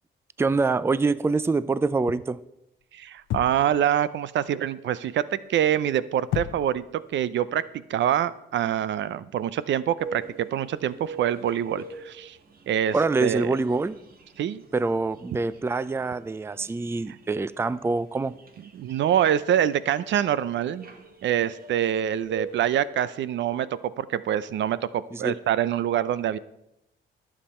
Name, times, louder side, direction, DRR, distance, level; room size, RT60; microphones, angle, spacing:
voice 1, 0.4-2.4 12.9-14.0 14.7-18.3 25.1-25.4, right 3 dB, 10° right, 17 dB, 0.4 m, -25 dB
voice 2, 2.9-6.8 7.1-7.6 7.9-12.4 12.7-12.9 13.2-13.6 14.4-14.6 18.7-20.9 21.2-23.7 24.0-26.4, right 10 dB, 65° right, 17 dB, 0.6 m, -25 dB
sound 1, 3.3-3.8 6.3-6.9, left 13 dB, 75° left, 0.5 m, -31 dB
sound 2, 10.0-22.8, right 4 dB, 50° right, 1.8 m, -44 dB
20.0 x 7.5 x 4.3 m, 0.85 s
cardioid pair, 90°, 20 cm